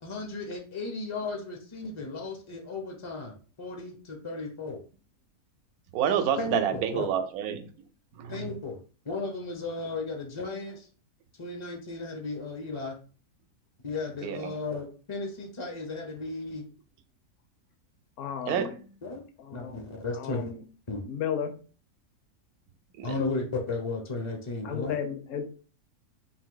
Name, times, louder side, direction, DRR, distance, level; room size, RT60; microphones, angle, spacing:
voice 1, 0.0-4.8 6.4-7.1 8.3-8.8 9.0-10.9 11.4-13.0 13.8-16.6 19.0-19.2 19.5-20.5 20.9-21.0 23.0-25.0, left 3 dB, 40° left, 2 dB, 0.4 m, -35 dB
voice 2, 5.9-7.7 8.1-8.5 14.2-14.5 18.5-18.7 23.0-23.1, right 8 dB, 80° right, 9 dB, 1.1 m, -28 dB
voice 3, 18.2-18.8 19.4-19.8 20.1-20.6 21.1-21.6 24.6-25.4, left 8 dB, 65° left, 5 dB, 1.0 m, -34 dB
3.8 x 2.6 x 3.8 m, 0.39 s
omnidirectional pair, 1.6 m